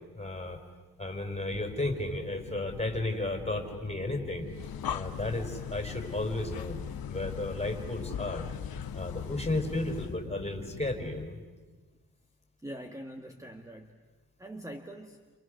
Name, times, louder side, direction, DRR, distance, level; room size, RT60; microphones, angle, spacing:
voice 1, 0.1-0.6 1.0-4.5 4.9-6.8 7.1-8.5 8.9-11.4, left 2 dB, 15° left, 6 dB, 4.5 m, -33 dB
sound 1, 1.5-11.2, left 6 dB, 50° left, 1.6 m, -45 dB
Breathing, 4.4-10.2, left 8 dB, 70° left, 1.4 m, -39 dB
voice 2, 12.6-14.0 14.4-15.2, right 1 dB, 10° right, 6 dB, 1.5 m, -43 dB
29.5 x 29.0 x 6.5 m, 1.3 s
cardioid pair, 95°, 38 cm